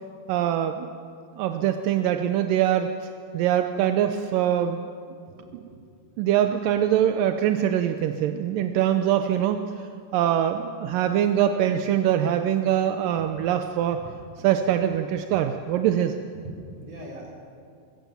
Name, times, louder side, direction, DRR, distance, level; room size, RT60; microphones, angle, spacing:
voice 1, 0.3-0.9 1.4-2.9 3.3-4.9 5.5-5.7 6.2-9.6 10.1-14.0 14.4-16.2, right 10 dB, 75° right, 7 dB, 2.1 m, -23 dB
voice 2, 5.4-5.8 6.4-6.5 13.9-14.1 14.8-14.9 15.3-15.4 16.4-17.3, right 1 dB, 40° right, -2 dB, 5.5 m, -41 dB
23.0 x 21.5 x 7.3 m, 2.3 s
omnidirectional pair, 4.6 m